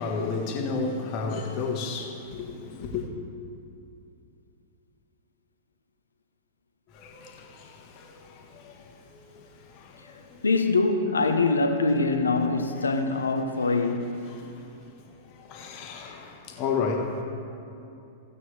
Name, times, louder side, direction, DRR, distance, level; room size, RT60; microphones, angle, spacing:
voice 1, 0.0-3.1 6.9-10.4 13.6-13.8 14.3-14.7 15.1-17.2, left 4 dB, 45° left, 1.4 m, -33 dB
voice 2, 10.4-14.2, left 3 dB, 85° left, 0.8 m, -24 dB
16.0 x 8.4 x 3.4 m
figure-of-eight pair, 105°, 0 cm